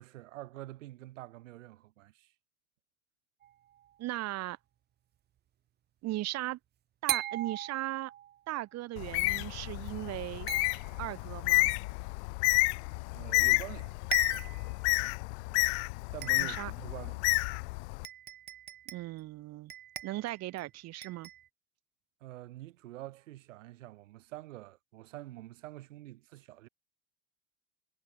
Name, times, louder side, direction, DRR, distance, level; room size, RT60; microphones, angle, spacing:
voice 1, 0.0-2.3 13.1-14.0 16.1-17.2 22.2-26.7, right 16 dB, 80° right, 4.2 m, -46 dB
sound 1, 3.4-4.0 7.1-8.4 10.5-11.3 13.4-13.5 13.8-13.9 14.1-14.7 15.3-15.4 16.2-16.7 17.6-17.7 18.0-19.2 19.7-20.7 21.0-21.5, right 11 dB, 25° right, 1.0 m, -40 dB
voice 2, 4.0-4.6 6.0-6.6 7.0-8.1 8.5-10.5 11.0-11.7 16.4-16.7 18.9-19.7 20.0-21.3, right 17 dB, 45° right, 4.9 m, -37 dB
Bird, 9.0-18.0, left 29 dB, 60° left, 1.4 m, -30 dB
supercardioid pair, 135°, 37 cm